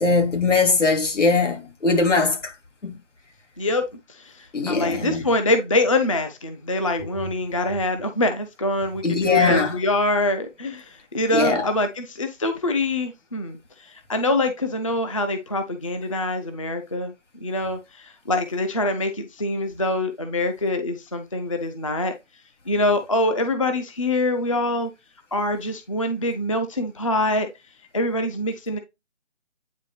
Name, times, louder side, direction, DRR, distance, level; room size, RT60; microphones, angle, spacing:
voice 1, 0.0-2.5 2.8-2.9 4.5-5.2 9.0-9.8 11.3-11.7, left 4 dB, 70° left, 2.9 m, -21 dB
voice 2, 4.1-17.1 17.4-22.1 22.7-24.9 25.3-27.5 27.9-28.8, left 2 dB, 25° left, 0.5 m, -24 dB
9.3 x 3.5 x 3.2 m
figure-of-eight pair, 160°, 38 cm